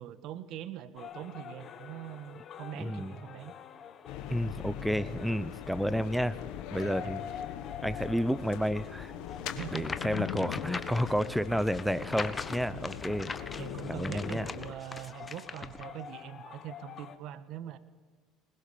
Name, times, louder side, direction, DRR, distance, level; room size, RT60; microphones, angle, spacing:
voice 1, 0.0-3.5 6.8-7.1 9.4-9.9 12.7-13.0 13.6-17.8, right 11 dB, 65° right, 14 dB, 1.4 m, -43 dB
sound 1, 1.0-17.2, left 8 dB, 45° left, 1.7 m, -48 dB
voice 2, 2.7-3.2 4.3-6.4 6.7-7.2 7.8-9.1 9.7-13.3 13.9-14.5, equal, ahead, 17 dB, 0.9 m, -31 dB
sound 2, 4.1-14.7, left 11 dB, 75° left, 1.6 m, -41 dB
sound 3, 9.4-15.9, left 4 dB, 25° left, 1.4 m, -41 dB
20.5 x 20.5 x 6.9 m, 1.4 s
supercardioid pair, 90°, 0 cm